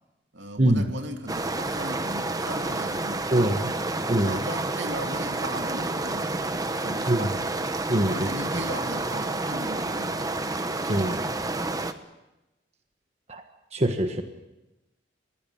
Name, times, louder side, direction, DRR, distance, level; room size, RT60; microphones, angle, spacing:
voice 1, 0.3-3.7 4.2-6.4 6.8-7.3 8.1-10.3 10.8-11.2, right 1 dB, 80° right, 5 dB, 2.4 m, -37 dB
sound 1, 1.3-11.9, right 2 dB, 20° right, 1.0 m, -29 dB
voice 2, 3.3-3.7 4.1-4.4 7.1-7.3 7.9-8.3 10.9-11.2 13.3-13.4 13.7-14.2, right 1 dB, 35° right, 6 dB, 1.4 m, -23 dB
21.0 x 16.5 x 9.3 m, 1.0 s
head